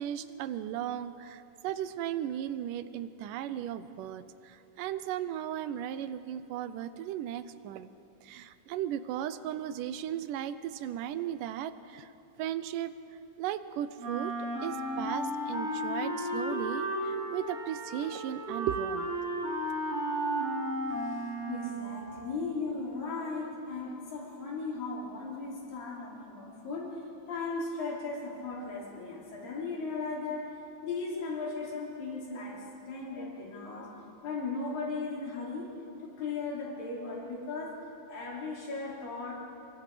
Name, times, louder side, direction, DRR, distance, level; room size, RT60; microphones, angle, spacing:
voice 1, 0.0-7.9 8.2-12.1 12.4-12.9 13.4-14.3 14.6-19.1, right 11 dB, 80° right, 13 dB, 2.2 m, -36 dB
Wind instrument woodwind instrument, 14.0-22.1, right 1 dB, 45° right, 5.3 m, -34 dB
voice 2, 21.5-27.0 27.3-34.0 34.2-35.7 36.0-37.8 38.1-39.3, left 3 dB, 75° left, -4 dB, 5.6 m, -37 dB
27.5 x 23.0 x 5.0 m, 2.9 s
omnidirectional pair, 4.0 m